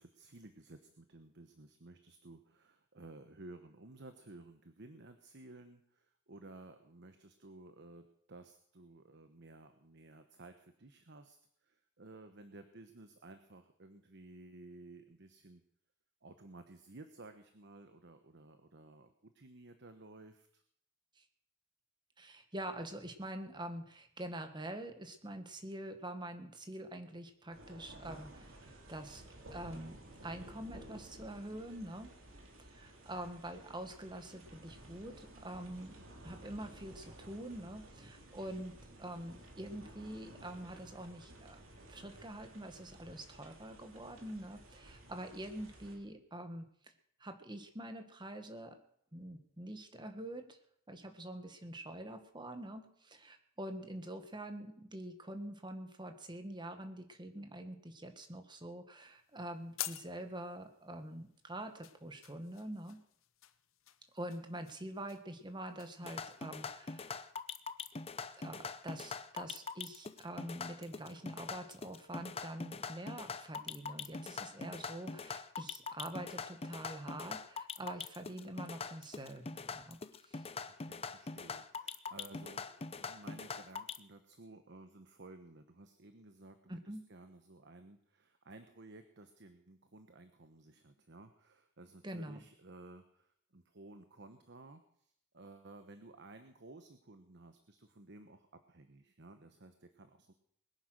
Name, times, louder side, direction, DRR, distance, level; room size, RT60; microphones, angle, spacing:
voice 1, 0.0-15.6 16.2-20.6 80.6-100.3, right 2 dB, 60° right, 8 dB, 1.1 m, -55 dB
voice 2, 22.2-29.2 29.5-32.1 32.6-36.0 36.2-41.6 41.9-46.9 47.2-48.8 49.1-50.6 50.9-63.0 64.1-67.2 68.4-80.5 86.7-87.0 92.0-92.4, right 1 dB, 20° right, 7 dB, 1.7 m, -45 dB
sound 1, 27.5-46.0, right 1 dB, 80° right, 3.3 m, -55 dB
sound 2, 59.0-69.2, left 13 dB, 80° left, 0.9 m, -52 dB
sound 3, 66.0-84.0, left 4 dB, 30° left, 0.7 m, -43 dB
21.0 x 9.7 x 6.4 m, 0.68 s
head